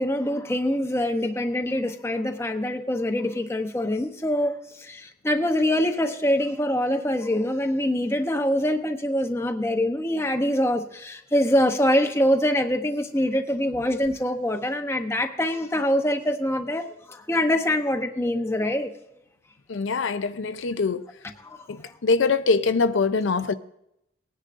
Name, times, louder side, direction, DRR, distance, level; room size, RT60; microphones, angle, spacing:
voice 1, 0.0-18.9 21.4-21.6, left 1 dB, 15° left, 5 dB, 0.7 m, -24 dB
voice 2, 19.7-21.1 21.7-23.5, left 4 dB, 80° left, 11 dB, 0.5 m, -23 dB
20.0 x 10.0 x 2.5 m, 0.79 s
head